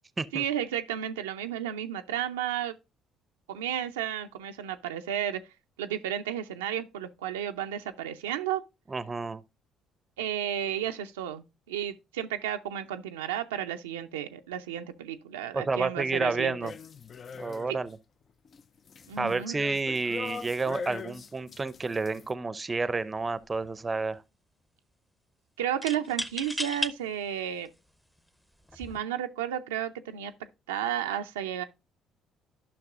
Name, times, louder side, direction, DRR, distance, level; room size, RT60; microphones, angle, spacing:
voice 1, 0.3-2.7 3.5-5.4 5.8-8.6 10.2-16.6 17.7-17.8 19.1-19.6 25.6-27.7 28.7-30.3 30.7-31.6, right 10 dB, 85° right, 0.4 m, -32 dB
voice 2, 8.9-9.4 15.5-16.7 17.4-18.0 19.2-24.2, right 3 dB, 25° right, 0.6 m, -30 dB
sound 1, 16.6-17.9 18.3-22.3, left 5 dB, 45° left, 0.4 m, -42 dB
sound 2, 22.7-22.9 23.2-23.9 25.8-26.9 27.7-27.8 28.7-29.0, equal, 10° left, 0.7 m, -34 dB
11.5 x 5.8 x 2.4 m
hypercardioid pair, 55°, 0 cm